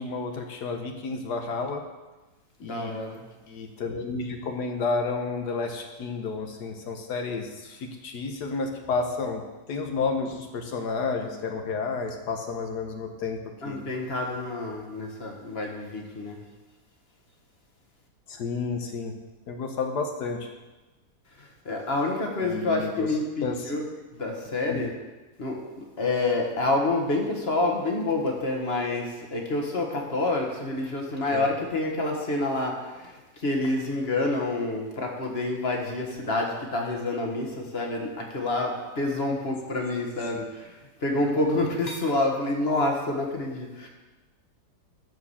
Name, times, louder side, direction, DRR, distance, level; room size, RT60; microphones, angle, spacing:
voice 1, 0.0-1.8 2.6-3.0 3.5-9.4 9.7-13.4 13.6-13.8 18.3-19.1 19.5-20.5 22.4-23.1 23.4-23.7 24.7-24.8 31.3-31.5, left 4 dB, 75° left, 4 dB, 1.5 m, -31 dB
voice 2, 2.6-3.3 13.6-16.4 21.4-24.9 25.4-43.9, left 2 dB, 40° left, 1 dB, 1.7 m, -28 dB
12.5 x 4.9 x 7.2 m, 1.2 s
omnidirectional pair, 1.8 m